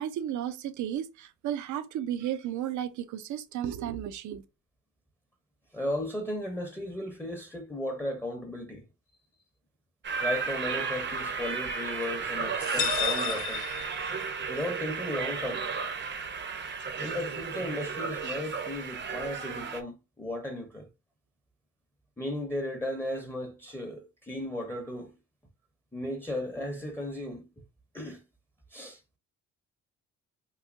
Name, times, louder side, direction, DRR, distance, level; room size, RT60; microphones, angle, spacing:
voice 1, 0.0-4.4, right 10 dB, 75° right, 0.6 m, -33 dB
voice 2, 5.7-8.8 10.2-13.7 14.5-15.6 17.0-20.9 22.2-25.2 25.9-27.5 27.9-28.2 28.7-29.0, left 1 dB, 5° left, 0.8 m, -35 dB
sound 1, 10.0-19.8, right 5 dB, 40° right, 0.7 m, -33 dB
sound 2, 12.6-14.5, left 10 dB, 65° left, 0.9 m, -33 dB
3.9 x 2.7 x 2.5 m
cardioid pair, 90°, 30 cm